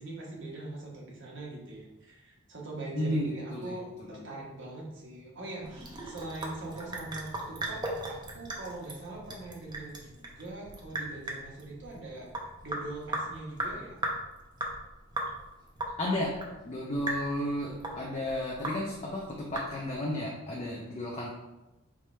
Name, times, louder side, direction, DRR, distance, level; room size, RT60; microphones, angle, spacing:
voice 1, 0.0-12.3 12.6-14.0, right 2 dB, 60° right, -3 dB, 1.2 m, -42 dB
voice 2, 2.9-3.7 16.0-16.3 16.6-21.3, left 1 dB, 30° left, -3 dB, 0.6 m, -33 dB
Sink (filling or washing) / Drip, 5.6-20.1, right 1 dB, 20° right, 0.6 m, -38 dB
4.8 x 2.4 x 4.2 m, 1.0 s
head